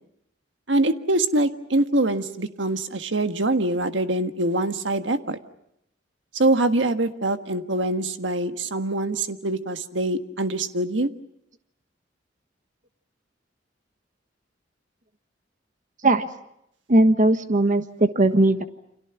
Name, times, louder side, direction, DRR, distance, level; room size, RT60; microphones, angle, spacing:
voice 1, 0.7-5.4 6.3-11.1, right 2 dB, 75° right, 8 dB, 1.6 m, -24 dB
voice 2, 16.9-18.7, right 2 dB, 45° right, 9 dB, 1.4 m, -18 dB
29.5 x 27.0 x 5.9 m, 0.77 s
head